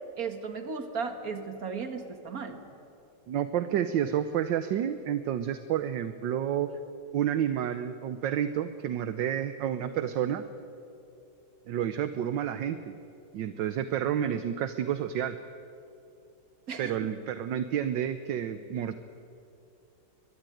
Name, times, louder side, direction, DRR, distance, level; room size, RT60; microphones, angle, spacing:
voice 1, 0.2-2.6 16.7-17.1, right 5 dB, 45° right, 7 dB, 2.2 m, -35 dB
voice 2, 3.3-6.7 7.1-10.4 11.7-12.9 13.3-15.4 16.8-19.0, right 10 dB, 70° right, 11 dB, 1.4 m, -30 dB
23.5 x 22.0 x 9.2 m, 2.7 s
omnidirectional pair, 2.2 m